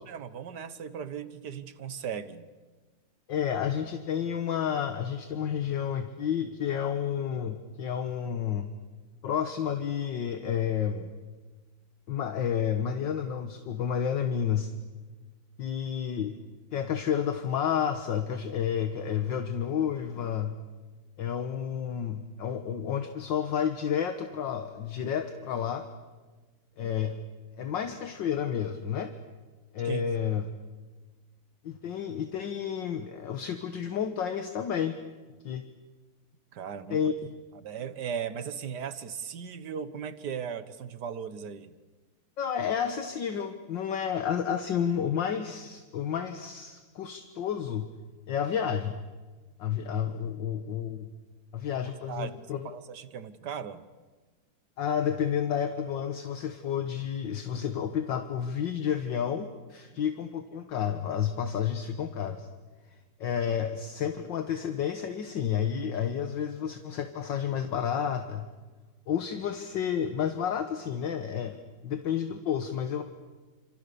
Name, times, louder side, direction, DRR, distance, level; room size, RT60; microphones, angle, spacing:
voice 1, 0.1-2.5 29.8-30.0 36.5-37.1 37.5-41.8 51.8-52.4 52.6-53.9, right 7 dB, 60° right, 13 dB, 1.7 m, -37 dB
voice 2, 3.3-8.7 9.2-11.1 12.1-14.7 15.6-16.4 16.7-20.6 21.2-25.9 26.8-27.2 27.6-29.1 29.7-30.5 31.6-35.0 35.4-35.6 36.9-37.1 42.4-47.9 48.3-49.0 49.6-51.1 51.5-52.6 54.8-62.5 63.2-68.5 69.1-71.6 71.8-73.0, left 8 dB, 65° left, 8 dB, 1.9 m, -30 dB
28.5 x 27.0 x 6.9 m, 1.3 s
omnidirectional pair, 2.2 m